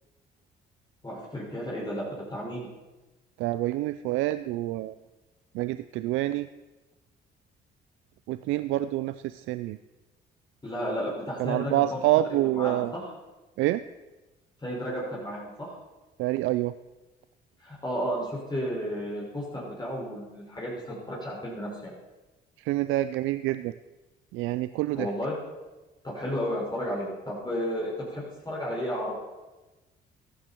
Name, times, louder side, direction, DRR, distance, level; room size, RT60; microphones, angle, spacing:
voice 1, 1.0-2.0 2.3-2.7 10.6-12.0 12.3-13.0 14.6-15.7 17.6-21.9 24.9-25.3 26.0-29.1, equal, 20° left, -5 dB, 5.8 m, -33 dB
voice 2, 3.4-4.9 5.5-6.5 8.3-9.8 11.4-12.9 13.6-13.8 16.2-16.7 22.6-23.7 24.3-25.1, right 15 dB, 85° right, 14 dB, 0.4 m, -27 dB
15.5 x 11.5 x 4.5 m, 1.1 s
supercardioid pair, 70°, 20 cm